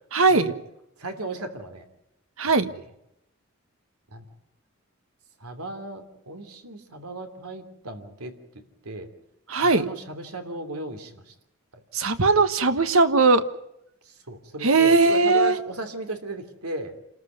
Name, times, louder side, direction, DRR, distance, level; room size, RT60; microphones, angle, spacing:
voice 1, 0.1-0.5 2.4-2.7 9.5-9.8 11.9-13.4 14.6-15.5, right 3 dB, 70° right, 10 dB, 1.3 m, -19 dB
voice 2, 1.0-1.8 2.6-2.8 4.1-4.3 5.4-9.1 9.6-11.3 11.7-11.8 14.0-16.9, right 2 dB, 90° right, 6 dB, 3.1 m, -36 dB
28.0 x 14.0 x 9.4 m, 0.83 s
head